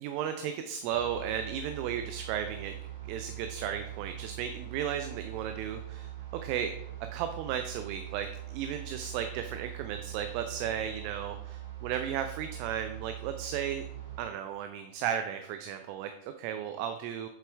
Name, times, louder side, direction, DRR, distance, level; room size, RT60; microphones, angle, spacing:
voice 1, 0.0-2.7 3.0-6.1 6.4-6.7 7.1-13.8 14.2-17.3, right 9 dB, 45° right, 8 dB, 0.6 m, -35 dB
sound 1, 0.9-14.2, right 13 dB, 65° right, 2.7 m, -42 dB
8.1 x 7.6 x 3.4 m, 0.81 s
figure-of-eight pair, 90°, 0 cm